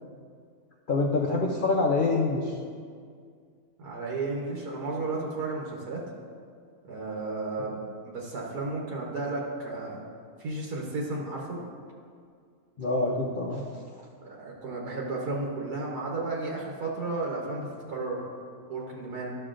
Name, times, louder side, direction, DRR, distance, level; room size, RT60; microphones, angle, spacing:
voice 1, 0.9-2.6 7.6-7.7 12.8-13.6, left 3 dB, 80° left, -2 dB, 0.4 m, -26 dB
voice 2, 3.8-6.0 6.8-7.8 8.0-10.0 10.4-11.6 14.2-18.2 18.7-19.4, right 3 dB, 85° right, -3 dB, 1.6 m, -33 dB
12.5 x 6.4 x 2.5 m, 2.2 s
omnidirectional pair, 1.6 m